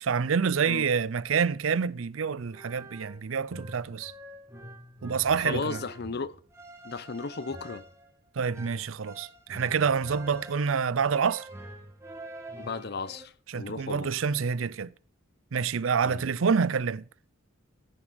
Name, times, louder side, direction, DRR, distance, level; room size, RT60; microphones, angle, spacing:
voice 1, 0.0-4.1 5.0-5.8 8.4-11.5 13.5-14.9 15.5-17.0, right 6 dB, 80° right, 0.5 m, -27 dB
sound 1, 2.4-13.3, right 1 dB, 15° right, 2.2 m, -46 dB
voice 2, 5.4-6.4 6.8-7.8 12.6-14.2 16.0-16.2, left 4 dB, 55° left, 0.8 m, -35 dB
14.0 x 7.2 x 6.3 m
head